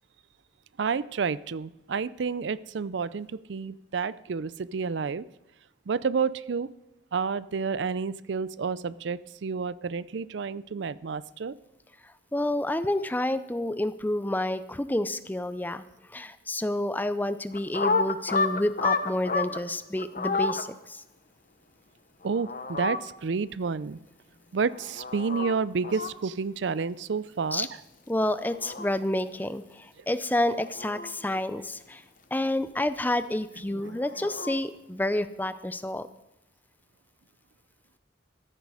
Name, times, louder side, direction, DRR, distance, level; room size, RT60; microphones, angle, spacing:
voice 1, 0.8-5.2 5.9-6.7 7.1-11.5 22.2-24.0 24.5-27.7 33.7-34.0, right 5 dB, 75° right, 18 dB, 0.5 m, -30 dB
voice 2, 12.3-15.8 16.1-21.0 27.5-27.7 28.1-32.0 32.3-36.1, left 1 dB, 10° left, 13 dB, 0.5 m, -29 dB
sound 1, 17.5-19.6 20.0-20.6 22.2-23.0 24.7-25.5 25.8-26.1 28.2-28.9 30.4-31.4 33.8-34.6, left 4 dB, 45° left, 0.9 m, -30 dB
14.5 x 13.5 x 4.9 m, 0.93 s
head